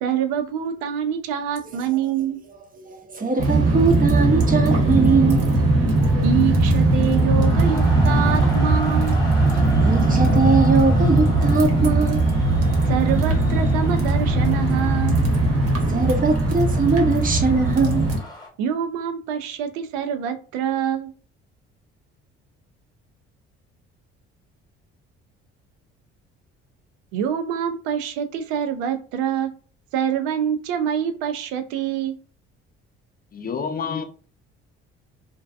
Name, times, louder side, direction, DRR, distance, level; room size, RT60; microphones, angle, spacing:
voice 1, 0.0-2.4 6.2-9.2 12.9-15.3 18.6-21.1 27.1-29.5 29.9-32.2, right 9 dB, 80° right, 0.5 m, -25 dB
voice 2, 2.9-5.4 6.1-6.2 9.8-12.2 15.9-18.1, right 4 dB, 25° right, 0.7 m, -21 dB
sound 1, 3.4-18.2, right 2 dB, 50° right, 1.0 m, -19 dB
sound 2, 3.7-18.5, left 1 dB, 15° left, 1.0 m, -38 dB
voice 3, 33.3-34.0, left 6 dB, 30° left, 0.5 m, -28 dB
2.6 x 2.2 x 2.4 m
hypercardioid pair, 60°, 31 cm